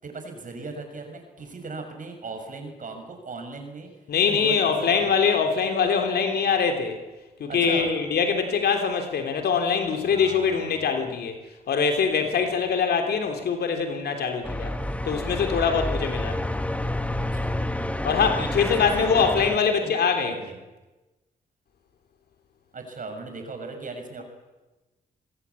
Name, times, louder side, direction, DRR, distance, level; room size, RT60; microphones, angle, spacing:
voice 1, 0.0-3.9 4.3-5.1 7.5-7.9 10.0-11.0 17.3-17.6 18.7-19.6 19.8-20.6 22.7-24.2, right 3 dB, 55° right, 5 dB, 6.5 m, -38 dB
voice 2, 4.1-7.0 7.4-11.4 11.7-14.7 15.0-16.4 18.0-20.4, left 6 dB, 80° left, 5 dB, 3.1 m, -23 dB
sound 1, 14.4-19.6, left 1 dB, 10° left, 1.6 m, -29 dB
26.5 x 20.0 x 8.4 m, 1.1 s
cardioid pair, 85°, 16 cm